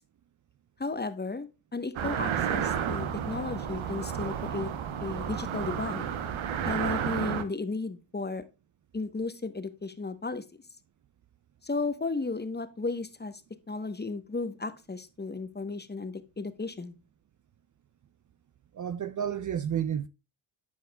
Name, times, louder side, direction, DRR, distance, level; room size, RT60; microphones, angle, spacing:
voice 1, 0.8-4.7 5.0-6.1 6.6-8.4 8.9-10.4 11.6-13.4 13.7-16.9, left 3 dB, 20° left, 1.0 m, -34 dB
sound 1, 2.0-7.4, right 8 dB, 75° right, 1.0 m, -31 dB
voice 2, 18.7-20.1, right 9 dB, 40° right, 0.5 m, -31 dB
11.5 x 4.8 x 2.2 m
cardioid pair, 55°, 48 cm